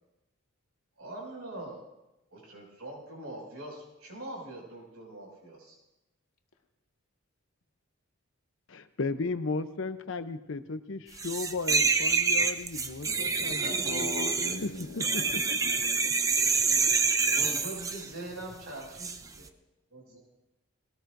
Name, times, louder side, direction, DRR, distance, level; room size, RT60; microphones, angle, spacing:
voice 1, 1.0-1.8 2.3-5.7 13.5-14.0 17.3-19.5 19.9-20.2, right 1 dB, 80° right, -3 dB, 6.1 m, -42 dB
voice 2, 8.7-14.1 14.6-14.7 15.0-15.2, left 3 dB, 55° left, 11 dB, 0.7 m, -35 dB
sound 1, 11.2-18.1 19.0-19.2, right 4 dB, 15° right, 0.4 m, -27 dB
voice 3, 13.8-15.9, left 2 dB, 80° left, 3 dB, 1.6 m, -39 dB
20.5 x 18.5 x 2.6 m, 0.94 s
head